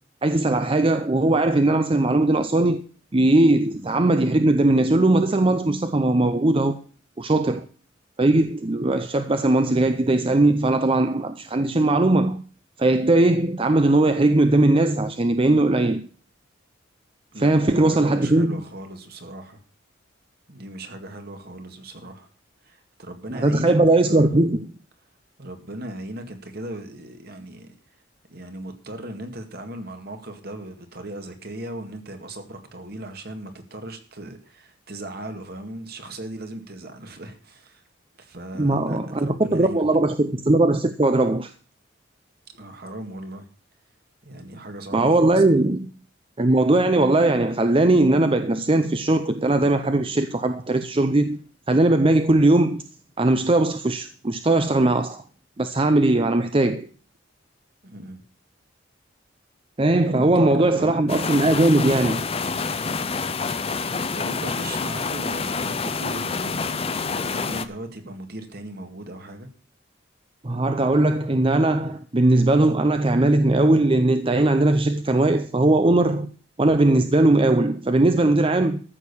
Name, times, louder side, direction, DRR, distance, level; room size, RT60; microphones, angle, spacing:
voice 1, 0.2-2.8 3.1-6.8 7.2-7.7 8.2-12.4 12.8-16.1 17.4-18.6 23.3-24.7 38.6-41.5 44.9-45.9 46.4-51.4 51.7-52.8 53.2-55.2 55.6-56.9 59.8-62.3 70.4-76.3 76.6-78.8, right 2 dB, 30° right, 0.6 m, -19 dB
voice 2, 3.6-3.9 17.3-19.6 20.5-22.3 22.6-24.3 25.4-27.7 28.3-37.8 38.2-39.9 42.5-43.5 44.2-45.7 57.8-58.2 59.9-61.0 64.1-69.5, right 1 dB, 55° right, 2.0 m, -38 dB
sound 1, 61.1-67.6, left 4 dB, 30° left, 0.7 m, -27 dB
14.0 x 6.5 x 6.9 m
head